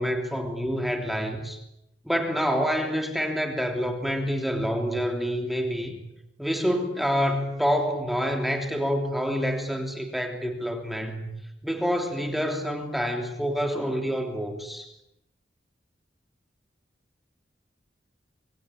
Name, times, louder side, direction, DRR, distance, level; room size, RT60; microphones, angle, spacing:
voice 1, 0.0-1.6 2.1-6.0 6.4-11.3 11.6-14.9, equal, ahead, 4 dB, 3.2 m, -27 dB
26.0 x 24.5 x 8.9 m, 0.83 s
head